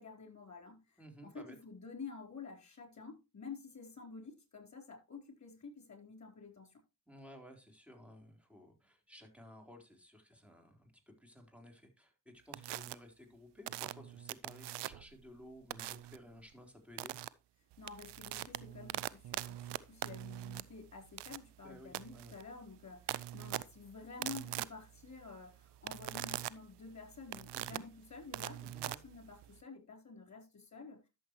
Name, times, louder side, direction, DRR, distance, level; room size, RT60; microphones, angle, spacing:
voice 1, 0.0-6.8 17.8-31.1, left 4 dB, 40° left, 4.2 m, -50 dB
voice 2, 1.0-1.6 7.1-17.2 21.6-22.3 27.5-27.8 28.7-29.0, equal, 5° right, 4.1 m, -55 dB
sound 1, 12.5-12.9 13.7-15.1 15.7-16.2 17.0-17.3 17.7-29.6, right 15 dB, 70° right, 0.6 m, -42 dB
12.0 x 7.1 x 3.2 m
supercardioid pair, 45°, 44 cm